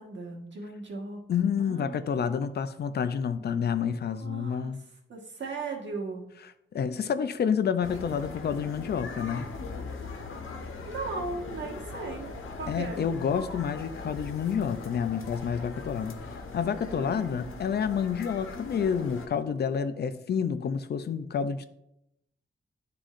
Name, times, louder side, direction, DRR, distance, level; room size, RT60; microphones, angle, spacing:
voice 1, 0.0-1.2 1.5-2.3 4.2-4.7 5.1-6.2 10.9-12.3 12.6-13.0 16.9-17.8, right 3 dB, 65° right, 1.4 m, -37 dB
voice 2, 1.3-4.8 6.7-9.5 12.7-21.6, left 7 dB, 55° left, 0.4 m, -29 dB
sound 1, 7.8-19.3, left 3 dB, 85° left, 0.9 m, -40 dB
11.5 x 3.8 x 2.5 m
wide cardioid pair, 170°, 21 cm